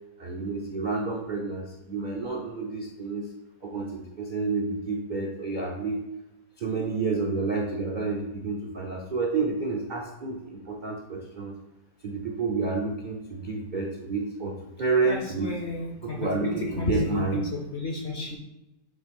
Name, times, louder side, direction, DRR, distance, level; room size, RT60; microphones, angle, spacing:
voice 1, 0.2-3.3 3.6-6.0 6.6-11.5 12.0-15.5 16.0-17.4, right 4 dB, 55° right, -1 dB, 0.5 m, -29 dB
voice 2, 15.0-18.4, left 3 dB, 55° left, 0 dB, 0.8 m, -32 dB
5.7 x 3.2 x 5.3 m, 0.98 s
omnidirectional pair, 1.9 m